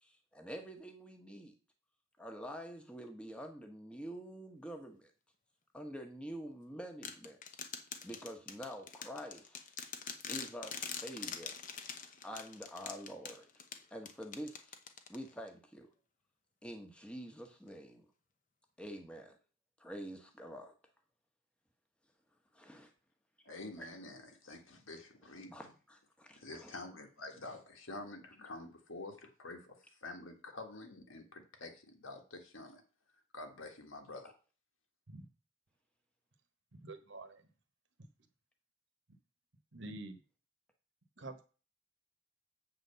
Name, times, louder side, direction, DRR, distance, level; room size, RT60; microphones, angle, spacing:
voice 1, 0.0-1.5 2.2-5.1 5.7-7.4 8.0-9.6 10.3-11.6 12.2-13.5 13.9-14.7 15.1-15.9 16.6-18.1 18.8-19.4 19.8-20.7 22.5-22.9 23.8-23.9 25.5-26.7, equal, 5° left, 3 dB, 1.2 m, -47 dB
sound 1, 7.0-15.5, left 7 dB, 40° left, 0.8 m, -45 dB
voice 2, 23.4-25.5 26.4-32.8 33.3-34.3, left 2 dB, 80° left, 4 dB, 1.6 m, -48 dB
voice 3, 36.7-37.5 39.7-40.2 41.2-41.4, right 2 dB, 60° right, 8 dB, 1.1 m, -47 dB
7.6 x 4.0 x 6.8 m, 0.36 s
head